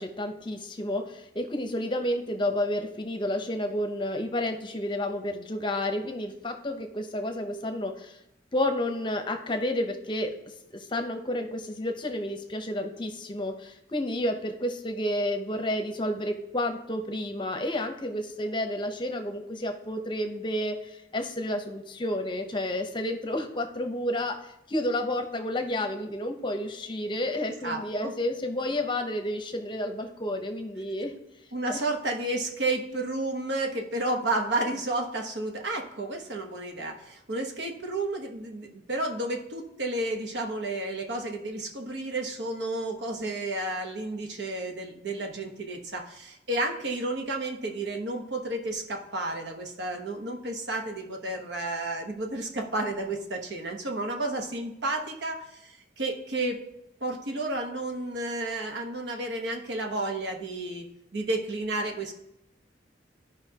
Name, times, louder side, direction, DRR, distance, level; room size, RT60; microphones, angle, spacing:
voice 1, 0.0-8.2 8.5-10.3 10.7-31.1 31.7-31.8, left 1 dB, 25° left, 5 dB, 0.7 m, -31 dB
voice 2, 27.6-28.1 31.5-56.6 57.0-60.8 61.1-62.1, right 2 dB, 70° right, 2 dB, 1.1 m, -31 dB
13.0 x 5.2 x 2.8 m, 0.85 s
head